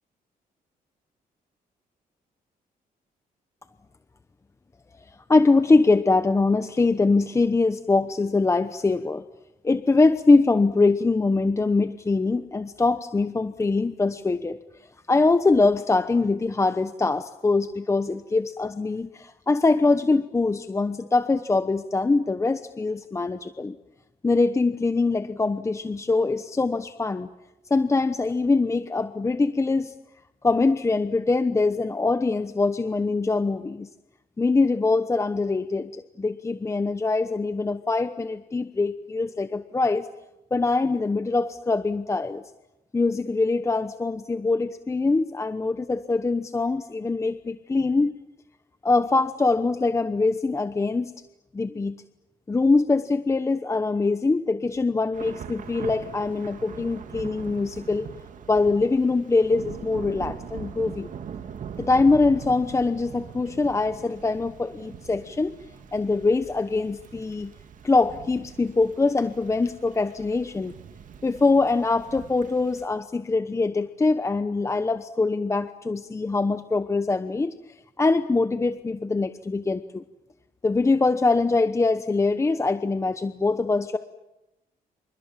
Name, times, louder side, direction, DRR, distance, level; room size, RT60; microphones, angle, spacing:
voice 1, 5.3-9.2 9.6-14.6 15.1-23.8 24.2-27.3 27.7-29.9 30.4-33.9 34.4-40.1 40.5-42.4 42.9-48.2 48.8-51.1 51.5-52.0 52.5-58.1 58.5-61.1 61.8-65.5 65.9-67.5 67.8-70.7 71.2-77.5 78.0-80.0 80.6-84.0, left 3 dB, 20° left, 11 dB, 1.0 m, -23 dB
Thunder / Rain, 55.1-72.8, right 7 dB, 60° right, 2.3 m, -42 dB
29.0 x 27.5 x 7.4 m, 0.96 s
cardioid pair, 130°, 15 cm